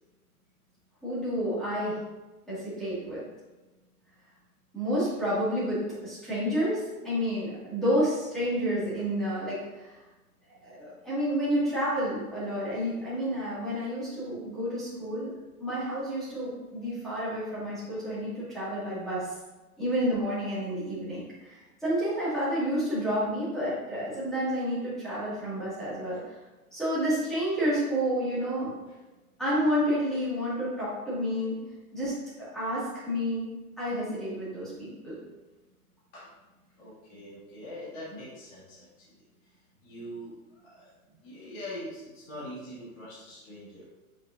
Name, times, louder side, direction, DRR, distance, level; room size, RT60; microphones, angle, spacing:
voice 1, 1.0-2.0 2.5-3.2 4.7-10.0 10.6-19.3 19.8-26.4 26.7-28.7 29.4-31.6 31.9-33.5 33.8-35.2, equal, ahead, -12 dB, 2.0 m, -30 dB
voice 2, 36.8-39.1 39.8-40.9 41.2-43.8, equal, 20° left, -10 dB, 2.1 m, -43 dB
8.3 x 6.0 x 2.6 m, 1.1 s
hypercardioid pair, 170°, 45 cm